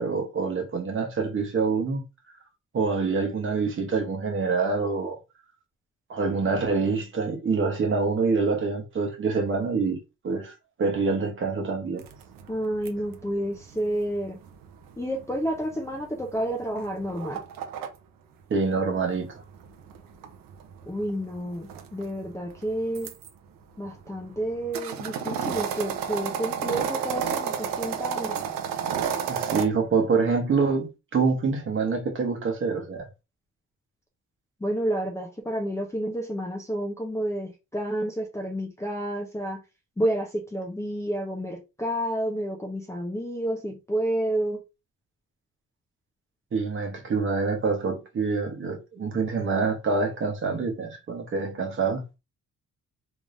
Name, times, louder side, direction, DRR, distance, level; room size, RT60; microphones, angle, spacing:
voice 1, 0.0-2.0 2.7-5.2 6.1-10.0 10.2-10.5 10.8-12.0 18.5-19.4 29.3-33.1 46.5-52.0, right 4 dB, 35° right, 1.0 m, -26 dB
sound 1, 12.0-17.9 19.1-23.3 23.9-29.6, right 8 dB, 80° right, 0.8 m, -32 dB
voice 2, 12.5-14.4 15.0-17.4 20.9-23.1 23.8-28.4 34.6-39.6 40.0-44.6, right 1 dB, 10° left, 0.6 m, -30 dB
3.4 x 3.4 x 2.5 m
cardioid pair, 145°, 33 cm